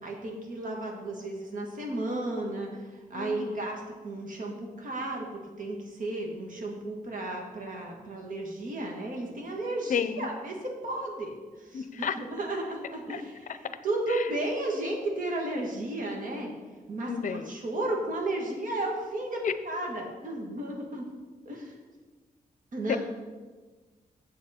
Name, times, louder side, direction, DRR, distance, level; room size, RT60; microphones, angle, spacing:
voice 1, 0.0-2.7 3.1-11.3 11.6-16.5 16.9-21.1 21.4-21.7 22.7-23.0, right 2 dB, 60° right, 0 dB, 1.6 m, -33 dB
voice 2, 3.1-3.7 9.9-10.3 11.7-12.2 13.1-13.2 14.1-14.2 17.1-17.5 19.4-19.5 22.9-23.0, left 7 dB, 60° left, 12 dB, 0.5 m, -31 dB
7.7 x 7.4 x 4.2 m, 1.3 s
wide cardioid pair, 120°, 15 cm